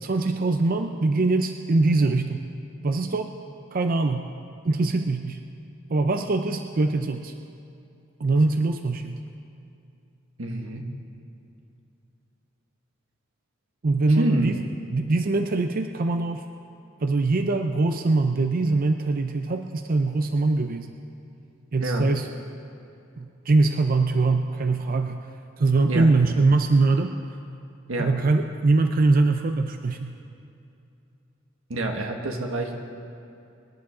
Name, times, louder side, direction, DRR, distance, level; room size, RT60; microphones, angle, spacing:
voice 1, 0.0-2.5 2.8-3.3 3.7-4.3 4.6-5.4 5.9-7.3 8.2-9.2 13.8-14.6 14.9-16.4 17.0-21.0 21.7-22.3 23.2-25.2 25.6-27.1 28.0-30.2, right 3 dB, 45° right, 6 dB, 0.5 m, -22 dB
voice 2, 10.4-10.9 14.1-14.6 21.8-22.1 25.9-26.1 27.9-28.1 31.7-32.7, right 1 dB, 90° right, 2 dB, 1.6 m, -27 dB
24.5 x 11.5 x 3.8 m, 2.6 s
head